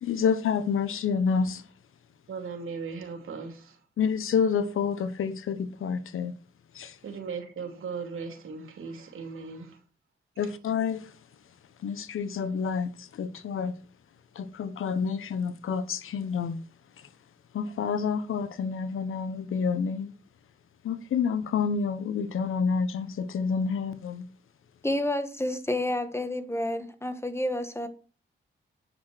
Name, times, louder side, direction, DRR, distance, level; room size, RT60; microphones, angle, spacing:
voice 1, 0.0-1.6 4.0-6.3 6.7-7.0 10.4-11.1 11.8-13.7 14.3-16.6 17.5-20.1 20.8-24.3, left 6 dB, 80° left, 1.1 m, -28 dB
voice 2, 2.3-3.8 7.0-9.8, right 5 dB, 80° right, 2.9 m, -37 dB
voice 3, 24.8-27.9, left 1 dB, 10° left, 1.7 m, -29 dB
9.5 x 6.2 x 6.3 m
cardioid pair, 60°, 21 cm